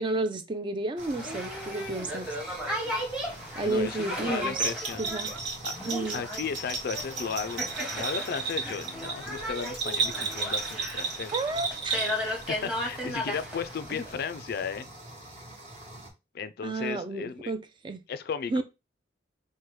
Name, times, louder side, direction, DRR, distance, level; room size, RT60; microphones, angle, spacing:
voice 1, 0.0-2.4 3.6-4.6 5.0-5.3 5.9-6.2 11.3-12.1 16.6-18.0 18.5-18.6, right 2 dB, 25° right, 0.4 m, -31 dB
Boat Water vehicle, 1.0-14.1, equal, 5° right, 0.9 m, -36 dB
sound 1, 1.0-16.1, right 1 dB, 40° right, 1.1 m, -46 dB
voice 2, 3.6-5.1 5.6-5.7 6.1-11.3 12.5-14.9 16.3-17.5 18.1-18.6, left 6 dB, 55° left, 0.3 m, -35 dB
Bell, 4.5-12.4, right 4 dB, 75° right, 1.3 m, -33 dB
4.6 x 2.2 x 3.1 m
head